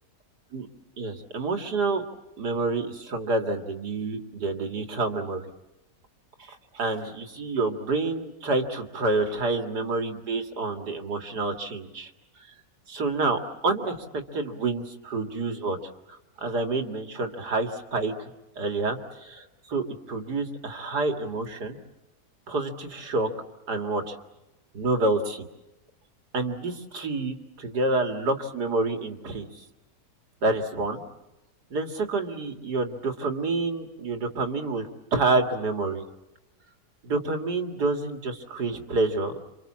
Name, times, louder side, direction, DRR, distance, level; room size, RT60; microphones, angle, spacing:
voice 1, 1.0-2.0 2.4-5.4 6.4-12.1 12.9-15.8 16.4-18.3 18.6-21.8 22.5-23.3 23.7-24.2 24.7-25.5 26.3-29.6 30.4-31.0 31.7-36.0 37.0-39.3, right 3 dB, 70° right, 5 dB, 2.6 m, -28 dB
28.5 x 26.0 x 7.4 m, 0.97 s
omnidirectional pair, 1.8 m